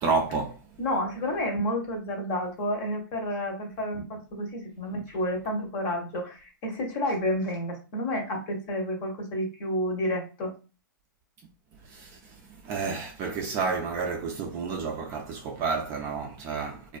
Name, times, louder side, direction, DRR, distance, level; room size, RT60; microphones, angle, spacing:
voice 1, 0.0-0.6 11.8-17.0, right 4 dB, 25° right, 0.3 m, -30 dB
voice 2, 0.8-10.5, left 1 dB, 40° left, 0.8 m, -30 dB
2.3 x 2.2 x 2.4 m
hypercardioid pair, 135°, 11 cm